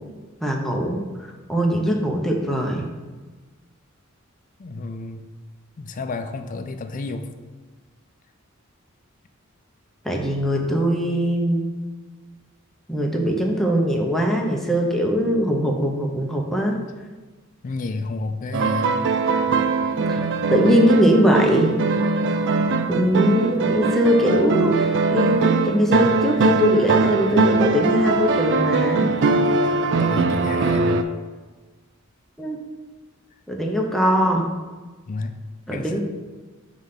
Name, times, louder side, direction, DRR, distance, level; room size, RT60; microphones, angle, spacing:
voice 1, 0.4-2.9 10.0-11.6 12.9-16.8 20.1-20.2 20.5-21.8 22.9-29.1 32.4-32.6 33.5-34.5 35.7-36.0, equal, ahead, 0 dB, 0.7 m, -21 dB
voice 2, 4.6-5.3 5.8-7.3 17.6-19.1 19.5-19.6 30.0-31.1 35.1-35.4 35.7-36.0, left 3 dB, 40° left, 7 dB, 0.4 m, -31 dB
sound 1, 18.5-31.0, right 3 dB, 60° right, 0.4 m, -21 dB
5.5 x 3.2 x 5.7 m, 1.3 s
head